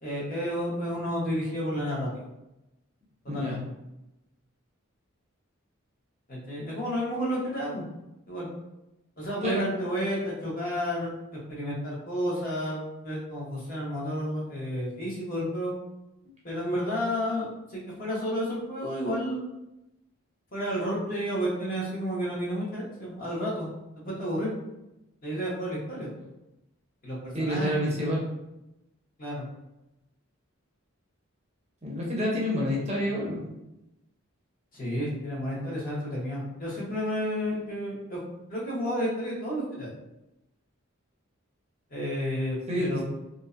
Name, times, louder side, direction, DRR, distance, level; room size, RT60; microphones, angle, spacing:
voice 1, 0.0-2.2 3.2-3.6 6.3-7.8 8.3-8.5 9.2-15.7 16.4-19.4 20.5-24.5 25.2-26.1 27.0-28.2 29.2-29.4 34.7-38.2 38.5-39.9 41.9-43.0, equal, 40° left, -5 dB, 0.8 m, -31 dB
voice 2, 3.3-3.6 9.4-9.7 27.3-28.2 31.8-33.4 42.7-43.0, left 1 dB, 30° right, -4 dB, 0.5 m, -28 dB
2.5 x 2.0 x 2.4 m, 0.91 s
head